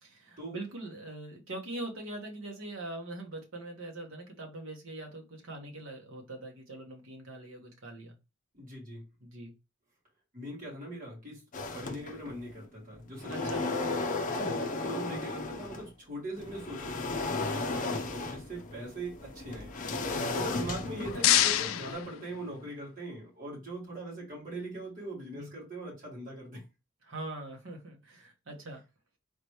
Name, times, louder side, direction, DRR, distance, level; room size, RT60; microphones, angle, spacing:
voice 1, 0.0-8.2 9.2-9.5 13.3-13.7 14.2-14.5 20.1-20.5 25.3-25.5 27.0-28.8, right 2 dB, 70° right, 1.4 m, -42 dB
voice 2, 8.5-9.0 10.3-11.4 11.7-13.7 14.4-20.0 20.3-26.6, right 1 dB, 40° right, 2.8 m, -41 dB
sound 1, 11.5-12.5 12.9-15.9 16.4-21.9, left 3 dB, 40° left, 0.6 m, -35 dB
sound 2, 20.7-22.9, left 12 dB, 85° left, 0.4 m, -28 dB
4.0 x 3.1 x 3.2 m
head